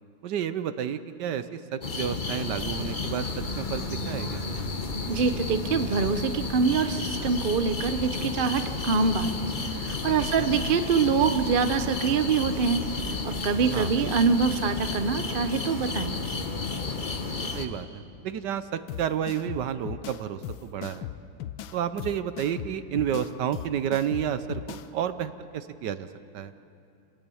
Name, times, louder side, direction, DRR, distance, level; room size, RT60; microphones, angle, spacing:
voice 1, 0.2-3.3 3.6-4.4 10.2-10.5 13.7-13.9 17.5-21.1 21.7-26.1 26.3-26.5, right 9 dB, 70° right, 12 dB, 1.3 m, -31 dB
sound 1, 1.8-17.7, left 3 dB, 30° left, 1.1 m, -32 dB
sound 2, 2.6-13.2, right 1 dB, 10° right, 0.7 m, -45 dB
voice 2, 5.1-12.8 13.2-16.1, right 5 dB, 45° right, 9 dB, 0.7 m, -25 dB
sound 3, 18.9-24.9, left 11 dB, 80° left, 1.5 m, -38 dB
28.0 x 18.0 x 7.0 m, 2.5 s
omnidirectional pair, 2.1 m